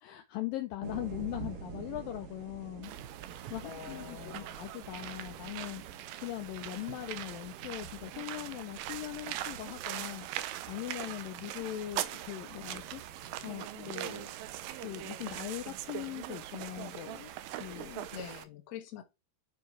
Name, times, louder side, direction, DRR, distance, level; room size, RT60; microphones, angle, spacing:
voice 1, 0.0-2.9 3.5-10.3 10.7-13.0 13.4-14.3 14.8-18.1, left 15 dB, 80° left, 2.1 m, -40 dB
sound 1, 0.8-18.4, right 7 dB, 65° right, 3.1 m, -49 dB
sound 2, 2.8-18.4, right 13 dB, 80° right, 2.1 m, -42 dB
voice 2, 3.6-4.6 18.1-19.0, left 9 dB, 65° left, 1.8 m, -45 dB
7.2 x 4.5 x 4.4 m
omnidirectional pair, 4.6 m